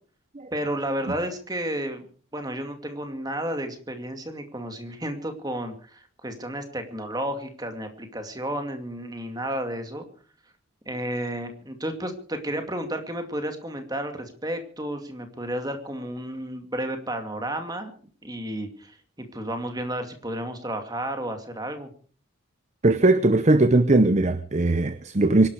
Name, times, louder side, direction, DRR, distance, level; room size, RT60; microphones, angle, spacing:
voice 1, 0.5-2.1 2.3-10.1 10.9-17.9 18.2-21.9, right 1 dB, 20° right, 2.4 m, -32 dB
voice 2, 22.8-25.5, right 2 dB, 35° right, 0.8 m, -19 dB
24.5 x 12.0 x 4.8 m
head